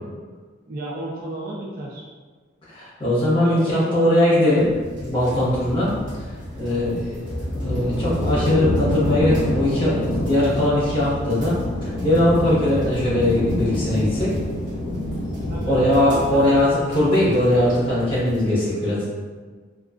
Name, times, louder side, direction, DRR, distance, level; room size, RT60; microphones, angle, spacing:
voice 1, 0.7-2.1 3.2-4.5 6.0-6.2 6.7-7.0 12.0-12.2 15.5-15.8 16.1-16.5, right 1 dB, 50° right, -5 dB, 0.4 m, -34 dB
voice 2, 2.7-4.7 5.0-5.9 6.6-7.2 7.6-14.3 15.7-19.1, left 1 dB, 30° left, -8 dB, 0.8 m, -20 dB
sound 1, 4.6-18.5, equal, 75° right, 1.0 m, -37 dB
sound 2, 5.1-16.6, left 1 dB, 80° left, 0.4 m, -27 dB
2.3 x 2.3 x 2.4 m, 1.4 s
head